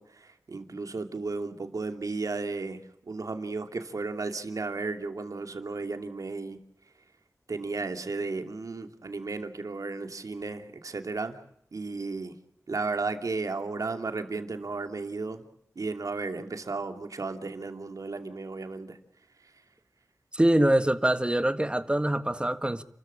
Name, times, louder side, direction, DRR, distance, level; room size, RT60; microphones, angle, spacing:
voice 1, 0.0-6.6 7.5-11.4 11.7-12.4 12.7-15.4 15.8-19.0, right 3 dB, 75° right, 2.7 m, -34 dB
voice 2, 20.3-22.8, right 1 dB, 15° right, 1.7 m, -24 dB
30.0 x 14.0 x 8.8 m
cardioid pair, 45°, 6 cm